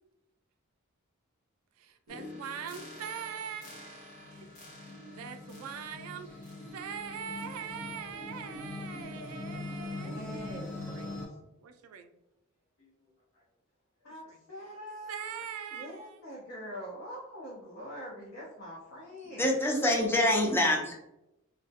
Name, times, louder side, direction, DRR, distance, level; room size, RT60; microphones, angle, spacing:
voice 1, 1.8-4.5 4.8-6.4 6.7-11.1 11.6-12.1 14.3-14.4 15.1-16.2, right 7 dB, 90° right, 7 dB, 0.3 m, -42 dB
sound 1, 2.1-11.3, left 2 dB, 45° left, 0.9 m, -43 dB
voice 2, 10.0-11.2 12.8-12.9 13.3-13.4 14.0-15.3 15.7-19.5, equal, 70° left, -7 dB, 0.7 m, -44 dB
voice 3, 19.4-21.1, left 1 dB, 10° left, 0 dB, 0.4 m, -26 dB
2.3 x 2.1 x 2.7 m, 0.88 s
head